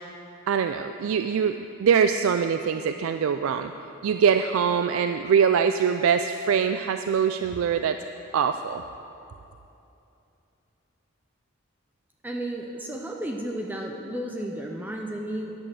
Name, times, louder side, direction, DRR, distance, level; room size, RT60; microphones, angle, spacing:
voice 1, 0.5-3.7 4.0-8.0 8.3-8.8, right 7 dB, 75° right, 8 dB, 0.3 m, -23 dB
voice 2, 12.2-15.5, right 1 dB, 10° right, 0 dB, 0.5 m, -33 dB
10.5 x 6.4 x 7.6 m, 2.8 s
head